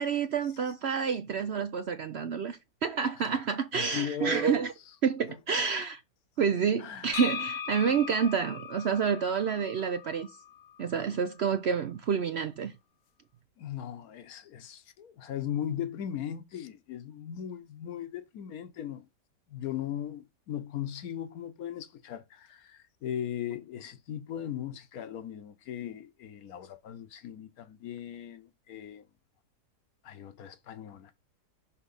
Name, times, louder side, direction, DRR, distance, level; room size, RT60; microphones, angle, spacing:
voice 1, 0.0-4.7 5.0-6.0 6.4-10.3 10.8-12.7, right 6 dB, 70° right, 0.6 m, -29 dB
voice 2, 3.7-4.6 5.3-5.4 6.8-7.1 13.6-19.1 19.5-29.0 30.0-31.2, left 9 dB, 65° left, 1.2 m, -38 dB
sound 1, 7.1-10.9, left 7 dB, 85° left, 1.4 m, -39 dB
6.1 x 5.6 x 4.0 m
omnidirectional pair, 1.8 m